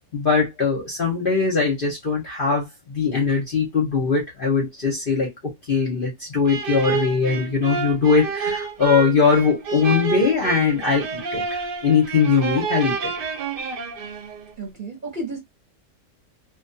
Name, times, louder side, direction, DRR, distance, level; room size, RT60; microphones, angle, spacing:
voice 1, 0.1-5.3 5.7-13.1, left 5 dB, 50° left, 0.7 m, -21 dB
sound 1, 6.5-14.5, right 5 dB, 75° right, 0.5 m, -28 dB
voice 2, 14.6-15.4, right 2 dB, 40° right, 0.9 m, -32 dB
2.4 x 2.2 x 2.6 m
omnidirectional pair, 1.6 m